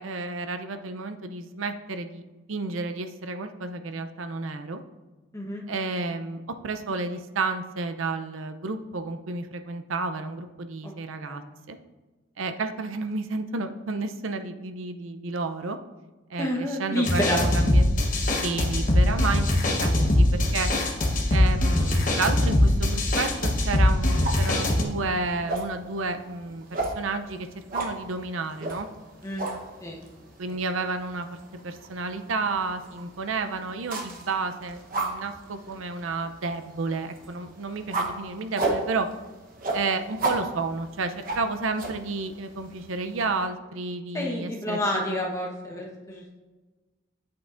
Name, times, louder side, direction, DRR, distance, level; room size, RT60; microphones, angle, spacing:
voice 1, 0.0-2.2 2.5-4.8 5.7-11.4 11.7-11.8 12.4-15.8 16.3-17.9 18.4-20.7 21.3-27.5 27.7-28.9 30.4-39.1 39.7-45.2, right 3 dB, 80° right, 8 dB, 0.6 m, -31 dB
voice 2, 16.4-17.4 29.2-29.5 29.8-30.0 44.1-46.4, left 1 dB, 15° left, -2 dB, 1.1 m, -29 dB
sound 1, 17.0-24.8, left 1 dB, 40° left, 1.0 m, -22 dB
sound 2, 24.2-43.5, right 2 dB, 45° right, 1.0 m, -35 dB
8.5 x 8.2 x 2.5 m, 1.2 s
head